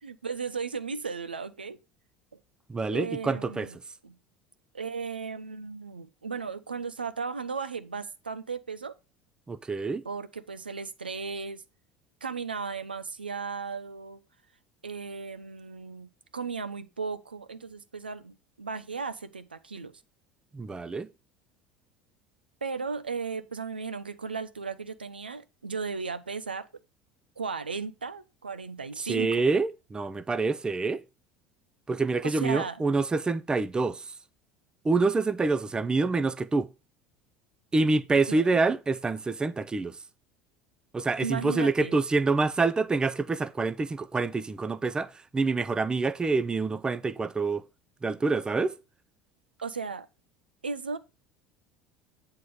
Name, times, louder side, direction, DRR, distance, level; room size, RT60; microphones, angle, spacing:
voice 1, 0.0-1.8 2.9-3.8 4.0-4.2 4.7-8.9 10.0-11.6 12.2-14.2 14.8-19.9 22.6-26.7 27.4-29.3 32.2-32.8 38.3-38.6 41.2-42.0 49.6-50.1 50.6-51.0, right 5 dB, 80° right, 0.7 m, -35 dB
voice 2, 2.7-3.7 9.5-10.0 20.5-21.1 29.0-31.0 31.9-34.1 34.8-36.7 37.7-40.0 40.9-47.7 48.0-48.8, right 3 dB, 15° right, 0.6 m, -27 dB
9.1 x 3.7 x 6.6 m
figure-of-eight pair, 65°, 5 cm